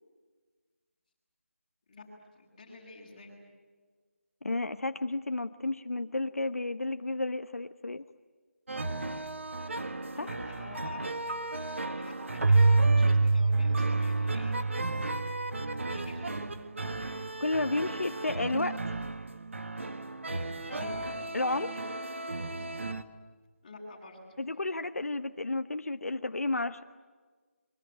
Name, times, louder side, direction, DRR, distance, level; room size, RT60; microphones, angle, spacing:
voice 1, 2.3-3.3 10.1-14.5 15.8-16.4 20.7-21.1 23.6-24.4, left 2 dB, 20° left, -4 dB, 8.0 m, -48 dB
voice 2, 4.4-8.0 10.2-10.3 17.4-19.0 21.3-21.8 24.4-26.8, left 2 dB, 85° left, 9 dB, 1.2 m, -32 dB
sound 1, 8.7-23.0, right 2 dB, 60° right, 1.8 m, -36 dB
Keyboard (musical), 12.4-15.9, right 3 dB, 75° right, 0.7 m, -25 dB
26.0 x 24.0 x 8.8 m, 1.5 s
figure-of-eight pair, 170°, 8 cm